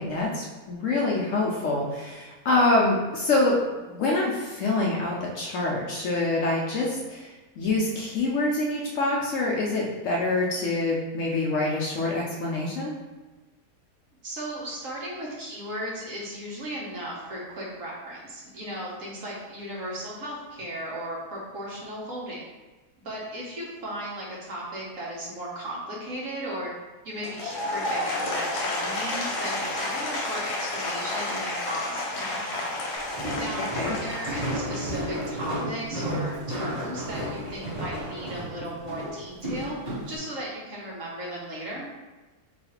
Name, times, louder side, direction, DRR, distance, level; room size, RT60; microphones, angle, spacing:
voice 1, 0.0-3.6 3.9-12.9 33.7-33.9, left 2 dB, 65° left, -3 dB, 0.8 m, -26 dB
voice 2, 14.2-22.5 23.0-26.7 27.0-32.8 33.3-39.8 40.1-41.8, right 1 dB, 60° right, -5 dB, 1.2 m, -36 dB
Applause / Crowd, 27.2-35.4, left 2 dB, 90° left, 1.2 m, -31 dB
Walk footsteps, 33.0-40.2, equal, 25° right, 1.2 m, -33 dB
3.1 x 2.4 x 4.3 m, 1.2 s
omnidirectional pair, 1.7 m